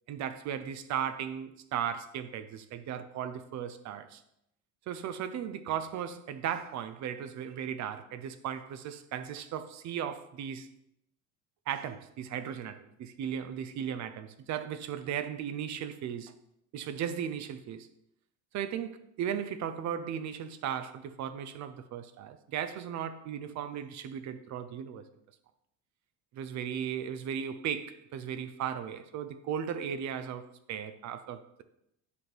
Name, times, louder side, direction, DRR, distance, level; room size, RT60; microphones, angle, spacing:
voice 1, 0.1-4.2 4.9-10.7 11.7-16.3 16.7-17.9 18.5-25.0 26.3-31.6, right 9 dB, 50° right, 0.5 m, -36 dB
6.8 x 4.3 x 3.3 m
cardioid pair, 115°, 36 cm